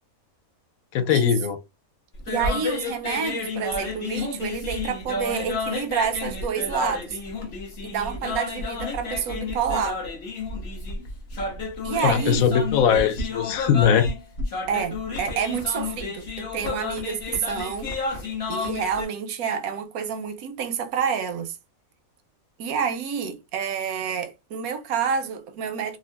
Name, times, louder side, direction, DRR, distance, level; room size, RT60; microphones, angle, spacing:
voice 1, 0.9-1.6 12.0-14.1, left 8 dB, 80° left, 1.0 m, -20 dB
sound 1, 2.2-19.1, left 3 dB, 50° left, 1.1 m, -31 dB
voice 2, 2.3-7.2 7.8-10.0 11.8-12.5 14.7-18.2 18.5-21.6 22.6-26.0, right 7 dB, 90° right, 1.1 m, -28 dB
3.7 x 2.1 x 2.3 m
omnidirectional pair, 1.5 m